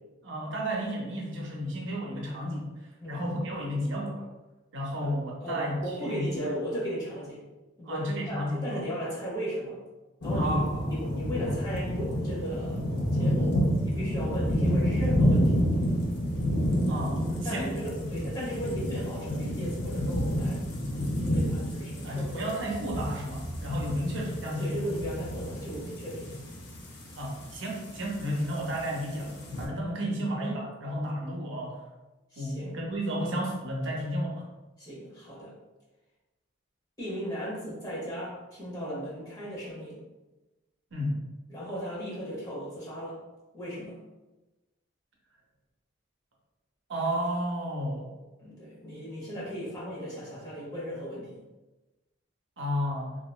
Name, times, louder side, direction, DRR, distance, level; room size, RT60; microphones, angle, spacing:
voice 1, 0.2-2.7 3.1-4.3 4.7-6.4 7.9-8.8 10.4-10.9 16.9-17.7 22.0-24.8 27.2-31.8 32.4-34.4 40.9-41.1 46.9-48.3 52.6-53.2, equal, 65° right, -2 dB, 0.6 m, -32 dB
voice 2, 5.4-7.4 7.8-9.8 10.2-13.6 13.8-15.6 17.4-20.6 21.2-22.3 23.9-24.0 24.4-26.4 32.3-32.8 34.8-35.5 37.0-40.0 41.5-43.2 43.5-44.0 48.4-51.4, equal, 20° left, -7 dB, 0.9 m, -36 dB
sound 1, 10.2-29.7, equal, 55° left, 0.5 m, -29 dB
2.9 x 2.5 x 2.3 m, 1.1 s
head